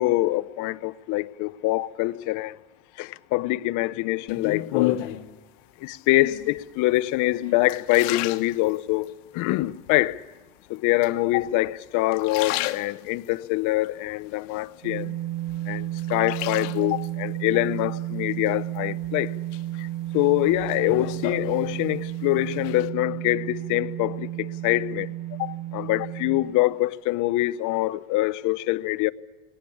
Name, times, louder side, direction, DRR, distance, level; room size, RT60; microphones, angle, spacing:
voice 1, 0.0-2.6 3.0-5.0 5.8-10.2 10.7-15.0 15.7-19.3 19.8-19.9 20.1-25.1 25.4-29.1, left 18 dB, 55° left, 0.7 m, -25 dB
sound 1, 4.3-5.3 6.1-6.6 7.1-9.1 9.6-10.2 11.0-11.7 12.0-13.4 13.8-15.1 15.5-17.1 18.5-19.1 19.5-22.1 22.4-22.9, left 15 dB, 70° left, 1.3 m, -33 dB
sound 2, 14.8-26.4, right 14 dB, 70° right, 3.8 m, -32 dB
20.0 x 18.0 x 8.6 m
supercardioid pair, 115°, 37 cm